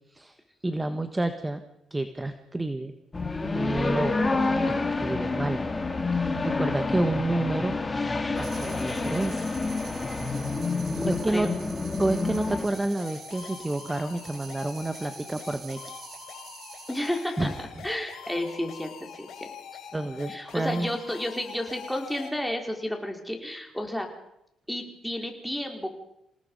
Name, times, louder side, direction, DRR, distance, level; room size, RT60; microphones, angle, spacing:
voice 1, 0.6-1.6 1.9-2.9 3.5-4.2 4.7-5.6 6.1-7.8 8.4-9.5 11.0-11.5 12.0-15.8 17.4-17.5 19.9-21.0, right 2 dB, 15° right, 9 dB, 1.4 m, -29 dB
sound 1, 3.1-12.7, left 3 dB, 25° left, 2.6 m, -28 dB
sound 2, 8.3-17.5, right 6 dB, 55° right, 2.5 m, -46 dB
voice 2, 10.9-11.5 16.9-17.5 17.8-19.5 20.3-24.1 24.7-25.9, left 1 dB, 5° left, 2 dB, 4.5 m, -32 dB
sound 3, 12.7-22.3, left 8 dB, 75° left, 3.9 m, -44 dB
28.0 x 18.0 x 5.5 m, 0.78 s
cardioid pair, 90°, 0 cm